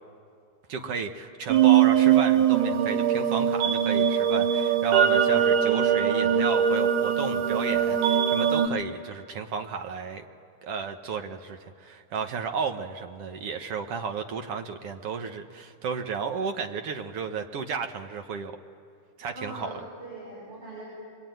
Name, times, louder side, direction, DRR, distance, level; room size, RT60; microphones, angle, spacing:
voice 1, 0.7-10.2 10.6-18.6 19.2-19.7, right 6 dB, 60° right, 5 dB, 1.8 m, -33 dB
sound 1, 1.5-8.7, right 9 dB, 80° right, 2.8 m, -22 dB
voice 2, 19.3-20.9, right 2 dB, 45° right, -6 dB, 7.8 m, -41 dB
25.0 x 22.0 x 9.3 m, 2.2 s
omnidirectional pair, 3.6 m